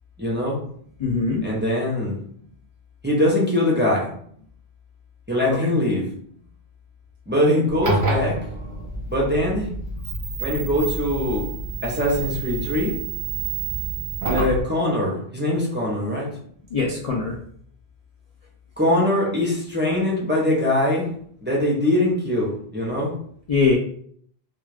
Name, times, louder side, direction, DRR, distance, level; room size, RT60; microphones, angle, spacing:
voice 1, 0.2-0.6 1.4-2.2 3.0-4.1 5.3-6.1 7.3-8.4 9.1-9.7 10.4-11.5 11.8-12.9 14.2-16.3 18.8-23.1, left 1 dB, 15° right, -4 dB, 0.5 m, -22 dB
voice 2, 1.0-1.4 5.5-5.6 16.7-17.4 23.5-23.8, left 4 dB, 60° left, -1 dB, 0.4 m, -21 dB
sound 1, 7.7-14.6, right 3 dB, 55° right, 0.8 m, -28 dB
2.4 x 2.4 x 3.2 m, 0.62 s
omnidirectional pair, 1.1 m